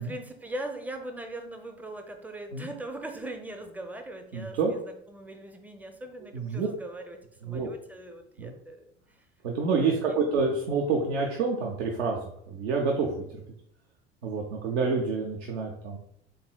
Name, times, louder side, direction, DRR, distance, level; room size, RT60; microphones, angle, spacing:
voice 1, 0.0-9.2 9.8-10.2, right 1 dB, 5° right, 5 dB, 0.4 m, -40 dB
voice 2, 4.3-4.7 6.3-6.7 7.4-7.7 8.4-8.5 9.4-13.2 14.2-16.0, right 4 dB, 70° right, 0 dB, 0.7 m, -28 dB
4.0 x 3.5 x 2.2 m, 0.70 s
figure-of-eight pair, 70°, 34 cm